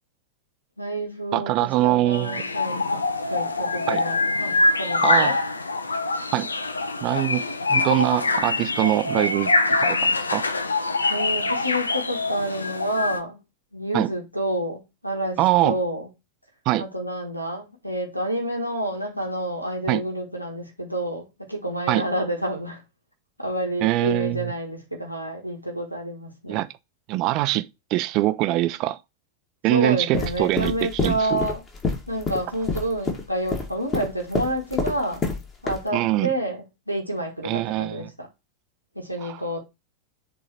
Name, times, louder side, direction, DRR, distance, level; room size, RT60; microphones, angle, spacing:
voice 1, 0.8-3.0 3.3-5.3 11.1-13.4 13.7-16.1 16.8-22.8 23.4-26.6 29.7-31.6 32.1-35.3 35.6-38.3 38.9-39.6, right 1 dB, 90° right, 1.5 m, -29 dB
voice 2, 1.3-2.4 3.9-4.0 5.0-5.3 6.3-6.5 7.0-7.4 7.7-9.5 9.8-10.4 13.9-14.1 15.4-15.7 16.7-16.9 19.9-20.0 21.9-22.0 23.8-24.5 26.5-26.7 27.1-29.0 29.6-31.4 35.9-36.3 37.4-38.1, right 16 dB, 40° right, 0.6 m, -23 dB
sound 1, 2.1-13.2, left 3 dB, 75° left, 0.6 m, -24 dB
sound 2, 30.1-35.4 35.7-35.8, left 4 dB, 25° left, 2.0 m, -27 dB
7.7 x 3.9 x 4.2 m
figure-of-eight pair, 90°, 0 cm